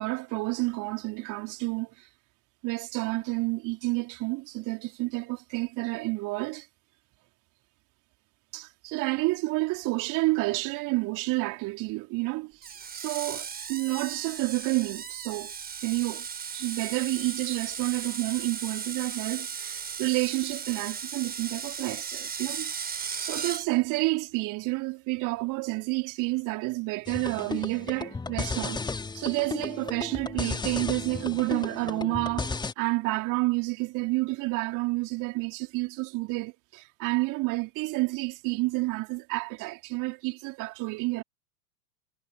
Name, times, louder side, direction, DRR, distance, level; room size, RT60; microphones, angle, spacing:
voice 1, 0.0-2.1 2.6-6.7 8.5-15.5 15.8-16.3 16.5-22.7 23.0-28.8 29.1-41.2, right 24 dB, 40° right, 3.4 m, -30 dB
Screech, 12.6-23.7, right 6 dB, 20° right, 7.2 m, -36 dB
sound 1, 27.1-32.7, left 4 dB, 10° left, 1.6 m, -34 dB
figure-of-eight pair, 90°, 49 cm